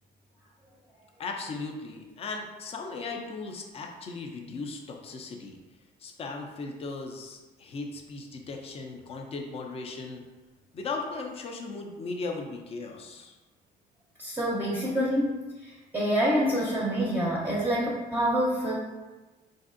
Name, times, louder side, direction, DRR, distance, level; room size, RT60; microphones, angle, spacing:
voice 1, 1.2-5.6 6.0-10.2 10.7-13.3, left 3 dB, 35° left, 2 dB, 0.5 m, -37 dB
voice 2, 14.2-18.7, equal, 10° right, -6 dB, 0.6 m, -27 dB
4.0 x 2.6 x 2.5 m, 1.2 s
cardioid pair, 110°, 17 cm